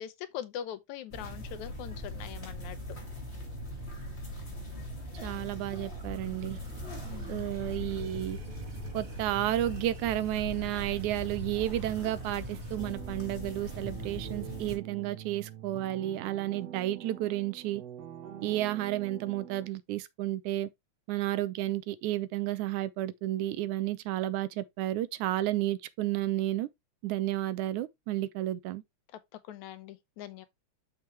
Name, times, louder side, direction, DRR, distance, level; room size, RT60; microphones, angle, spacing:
voice 1, 0.0-2.8 7.0-7.4 29.4-30.5, left 10 dB, 75° left, 2.2 m, -42 dB
sound 1, 1.1-14.8, equal, 20° left, 3.1 m, -40 dB
voice 2, 5.2-6.6 7.3-8.4 8.9-17.8 18.4-20.7 21.1-26.7 27.0-28.8, right 14 dB, 80° right, 2.1 m, -32 dB
sound 2, 5.9-12.7, right 6 dB, 45° right, 1.2 m, -53 dB
sound 3, 12.8-19.7, right 10 dB, 65° right, 1.9 m, -45 dB
6.8 x 6.2 x 3.2 m
omnidirectional pair, 3.4 m